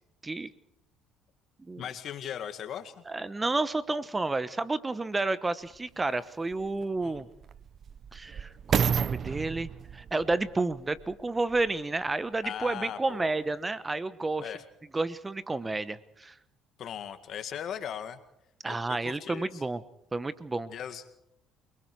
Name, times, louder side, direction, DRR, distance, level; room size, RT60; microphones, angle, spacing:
voice 1, 1.8-3.0 7.0-7.2 12.4-13.4 14.4-14.6 16.8-18.2 18.7-19.6 20.7-21.1, left 9 dB, 60° left, 9 dB, 2.0 m, -38 dB
voice 2, 3.1-7.3 8.1-14.5 14.9-16.3 18.6-19.8 20.1-20.7, right 3 dB, 20° right, 15 dB, 1.0 m, -31 dB
sound 1, 5.7-5.8 6.5-11.8 12.5-12.6, right 7 dB, 50° right, 0.7 m, -32 dB
28.5 x 20.5 x 4.7 m, 0.79 s
supercardioid pair, 70°, 0 cm